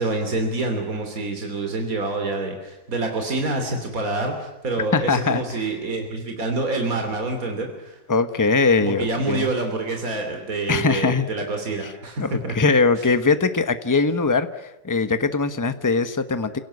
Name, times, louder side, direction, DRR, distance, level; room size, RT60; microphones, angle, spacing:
voice 1, 0.0-8.0 8.8-12.5, right 2 dB, 60° right, 4 dB, 3.4 m, -27 dB
voice 2, 4.9-5.7 8.1-9.5 10.7-11.3 11.8-11.9 12.2-16.6, left 4 dB, 15° left, 10 dB, 1.0 m, -21 dB
28.5 x 17.5 x 9.7 m, 0.94 s
omnidirectional pair, 1.6 m